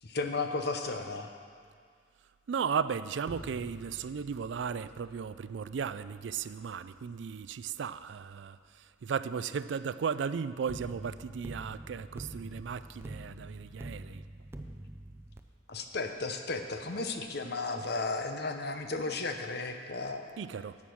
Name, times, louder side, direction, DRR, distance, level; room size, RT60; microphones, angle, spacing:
voice 1, 0.0-1.3 15.7-20.4, left 3 dB, 60° left, 6 dB, 0.9 m, -34 dB
voice 2, 2.5-14.2 20.4-20.8, right 6 dB, 70° right, 15 dB, 0.4 m, -35 dB
sound 1, 3.2-8.3 10.7-15.4, right 1 dB, 15° right, 0.5 m, -47 dB
11.5 x 7.4 x 6.2 m, 2.1 s
head